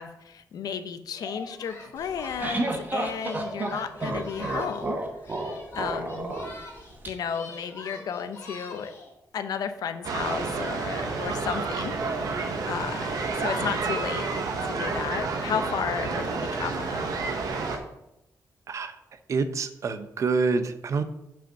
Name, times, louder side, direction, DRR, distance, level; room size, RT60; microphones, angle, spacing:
voice 1, 0.0-5.0 5.3-6.3 7.1-8.9 9.3-11.9 12.2-14.3 14.6-17.1, left 7 dB, 80° left, 10 dB, 0.6 m, -33 dB
Singing, 1.1-4.9 5.2-7.0 7.2-9.1, left 2 dB, 45° left, 1.5 m, -43 dB
sound 1, 2.0-7.1, right 2 dB, 30° right, 1.0 m, -31 dB
sound 2, 10.0-17.8, right 4 dB, 75° right, 1.0 m, -30 dB
voice 2, 19.3-21.0, right 4 dB, 50° right, 10 dB, 0.6 m, -27 dB
5.7 x 5.1 x 5.7 m, 0.85 s
wide cardioid pair, 125°, 6 cm